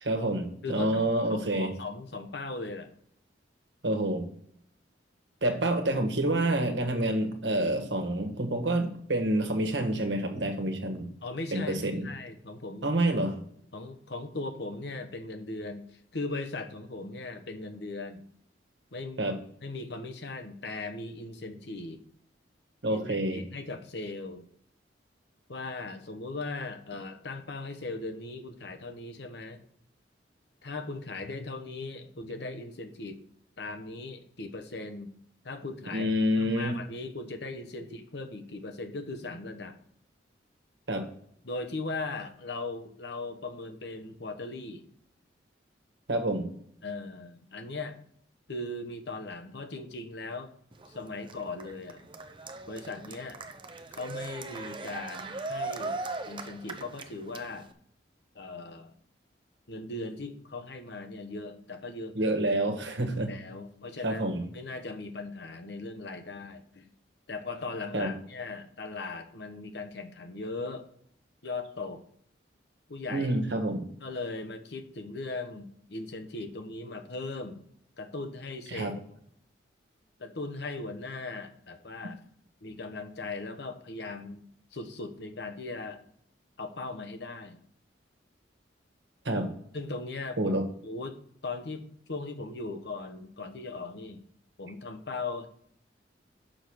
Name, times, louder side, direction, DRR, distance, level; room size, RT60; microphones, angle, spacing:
voice 1, 0.0-1.8 3.8-4.2 5.4-11.1 11.5-12.1 12.8-13.4 19.2-19.4 22.8-23.4 35.9-36.8 40.9-41.1 46.1-46.5 62.1-63.3 64.0-64.4 67.9-68.2 73.1-73.9 78.7-78.9 89.2-89.5 90.4-90.7, right 1 dB, 75° right, 5 dB, 1.4 m, -28 dB
voice 2, 0.6-2.9 11.2-12.9 13.7-18.2 18.9-19.2 19.6-22.0 22.9-24.4 25.5-29.6 30.6-33.2 33.6-35.1 35.4-36.1 36.3-39.8 41.4-44.8 46.8-48.0 48.5-50.5 50.9-52.1 52.7-53.4 53.9-56.0 56.3-57.7 58.3-58.9 59.7-62.3 63.1-66.9 67.3-70.8 71.4-72.0 72.9-73.4 74.0-77.6 78.0-78.9 80.2-82.2 82.6-84.4 84.7-86.0 86.6-87.6 89.7-90.6 90.8-94.2 94.6-95.5, left 3 dB, 65° left, 7 dB, 1.0 m, -38 dB
Cheering, 50.7-57.7, right 3 dB, 25° right, 0.5 m, -39 dB
6.3 x 5.0 x 6.1 m, 0.65 s
head